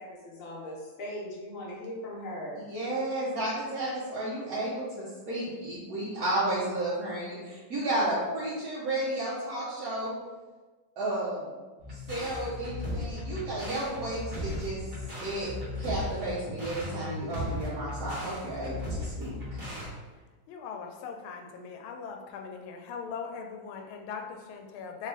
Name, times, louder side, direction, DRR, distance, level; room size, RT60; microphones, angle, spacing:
voice 1, 0.0-2.6, left 1 dB, 50° left, -4 dB, 1.1 m, -39 dB
voice 2, 2.6-10.1 11.0-11.5 11.9-14.8 15.2-15.5 15.8-19.6, right 1 dB, 60° right, -9 dB, 1.2 m, -32 dB
sound 1, 11.8-19.9, left 1 dB, 35° right, 0.9 m, -37 dB
voice 3, 20.5-25.1, left 6 dB, 85° left, 4 dB, 1.4 m, -40 dB
3.4 x 3.2 x 3.3 m, 1.3 s
omnidirectional pair, 2.2 m